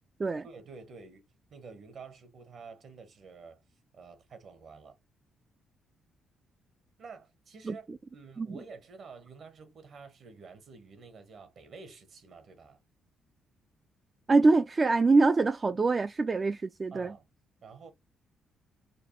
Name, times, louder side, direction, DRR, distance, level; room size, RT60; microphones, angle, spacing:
voice 1, 0.4-1.2 1.5-3.6 3.9-5.0 7.0-7.9 8.1-12.8 16.9-17.3 17.6-17.9, right 4 dB, 60° right, 1.3 m, -49 dB
voice 2, 14.3-17.1, right 3 dB, 30° right, 0.3 m, -24 dB
5.0 x 2.2 x 3.0 m
cardioid pair, 90°, 0 cm